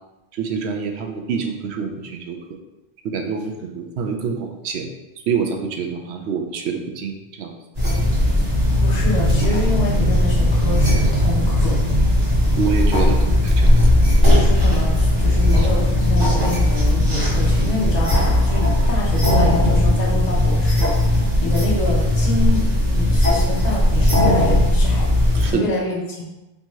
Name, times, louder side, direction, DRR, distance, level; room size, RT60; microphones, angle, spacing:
voice 1, 0.3-2.4 3.0-4.9 5.3-7.6 12.6-13.8 15.6-15.7 17.3-17.5 25.3-25.7, right 6 dB, 75° right, 3 dB, 0.8 m, -26 dB
sound 1, 7.7-25.5, left 1 dB, 45° right, 1.7 m, -17 dB
voice 2, 8.8-11.8 14.2-25.1 25.4-26.2, left 1 dB, 40° left, -4 dB, 1.0 m, -27 dB
3.4 x 2.8 x 4.4 m, 0.99 s
omnidirectional pair, 1.1 m